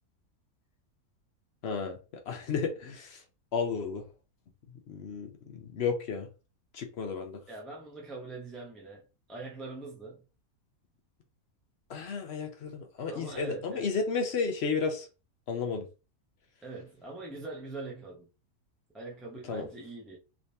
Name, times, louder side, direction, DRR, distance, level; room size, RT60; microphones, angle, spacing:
voice 1, 1.6-2.0 2.3-3.2 3.5-4.1 4.9-6.3 6.7-7.4 11.9-15.1 15.5-15.9 19.5-19.7, left 5 dB, 60° left, 0.7 m, -32 dB
voice 2, 7.5-9.0 9.3-10.2 13.1-13.9 16.6-18.3 18.9-20.2, right 3 dB, ahead, 0.3 m, -42 dB
3.4 x 2.9 x 2.7 m
omnidirectional pair, 1.6 m